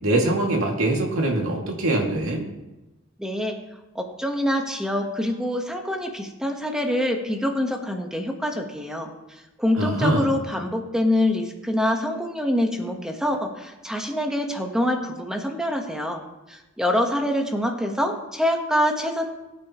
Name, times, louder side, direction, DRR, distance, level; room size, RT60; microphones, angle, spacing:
voice 1, 0.0-2.4 9.8-10.3, right 2 dB, 90° right, 0 dB, 2.4 m, -23 dB
voice 2, 3.2-3.6 3.9-16.2 16.5-19.3, left 1 dB, 5° right, 2 dB, 1.3 m, -25 dB
21.5 x 9.0 x 3.1 m, 1.0 s
head